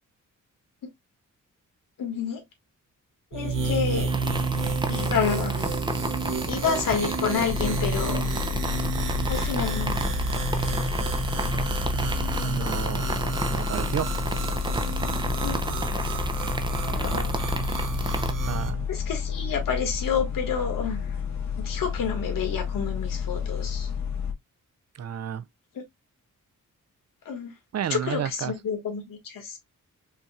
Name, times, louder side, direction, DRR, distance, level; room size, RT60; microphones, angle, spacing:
voice 1, 2.0-2.4 3.3-4.1 4.9-5.6 6.5-8.3 9.3-10.0 10.6-10.7 15.4-15.6 16.8-17.4 18.9-21.0 21.6-23.9 27.2-27.5 27.9-29.6, left 6 dB, 90° left, 1.6 m, -29 dB
sound 1, 3.3-18.7, right 4 dB, 70° right, 1.1 m, -30 dB
sound 2, 4.1-18.3, right 2 dB, 15° right, 0.7 m, -32 dB
sound 3, 7.4-24.3, left 7 dB, 55° left, 1.2 m, -31 dB
voice 2, 12.5-13.2 13.4-14.1 18.5-18.9 25.0-25.4 27.7-28.5, right 9 dB, 50° right, 0.6 m, -31 dB
5.6 x 2.8 x 2.3 m
cardioid pair, 90°, 32 cm